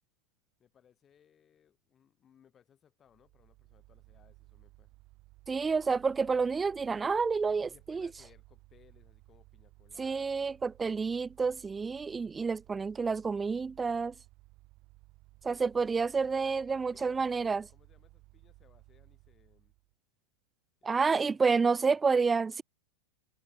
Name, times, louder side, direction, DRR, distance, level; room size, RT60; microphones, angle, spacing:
voice 1, 0.6-4.9 7.6-10.6 15.4-15.9 16.2-17.2 17.7-19.7 20.8-22.0, left 9 dB, 25° left, 5.9 m, -64 dB
Mechanical fan, 3.1-19.9, right 22 dB, 40° right, 2.3 m, -59 dB
voice 2, 5.5-8.1 10.0-14.1 15.4-17.7 20.8-22.6, right 5 dB, 15° right, 0.4 m, -29 dB
figure-of-eight pair, 90°, 0 cm